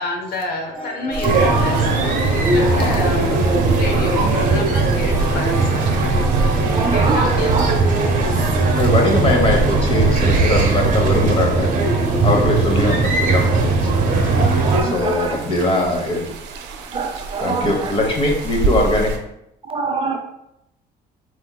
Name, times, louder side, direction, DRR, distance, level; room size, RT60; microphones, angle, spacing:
voice 1, 0.0-2.0 2.3-5.8 6.5-7.5, left 3 dB, 65° left, 0.7 m, -29 dB
sound 1, 0.7-13.2, equal, ahead, 1.2 m, -35 dB
sound 2, 1.1-19.2, right 2 dB, 90° right, 0.5 m, -29 dB
sound 3, 1.2-14.8, right 3 dB, 55° right, 0.8 m, -18 dB
voice 2, 6.7-7.2 7.5-7.7 8.6-8.9 14.4-15.4 16.9-17.9 19.6-20.2, right 4 dB, 30° right, 0.4 m, -25 dB
voice 3, 8.7-11.7 12.2-13.9 14.9-16.2 17.4-19.1, left 2 dB, 30° left, 0.9 m, -20 dB
4.3 x 2.8 x 2.2 m
cardioid pair, 110°, 17 cm